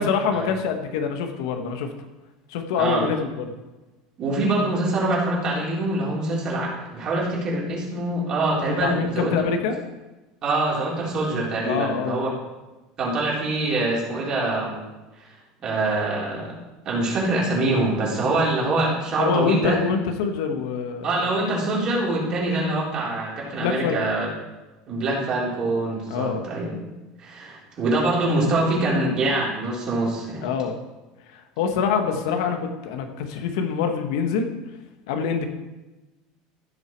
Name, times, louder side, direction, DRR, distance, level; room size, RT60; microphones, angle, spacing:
voice 1, 0.0-1.9 2.5-3.5 8.8-9.8 11.6-12.3 19.2-21.2 23.5-24.0 26.1-26.4 30.4-30.8 31.3-34.5 35.1-35.4, left 6 dB, 80° left, 5 dB, 1.4 m, -25 dB
voice 2, 4.2-9.3 10.4-12.3 13.0-14.8 15.6-16.5 16.8-19.8 21.0-24.3 24.9-26.7 27.2-30.5, right 2 dB, 35° right, -5 dB, 3.9 m, -24 dB
15.0 x 6.4 x 4.6 m, 1.1 s
cardioid pair, 150°, 2 cm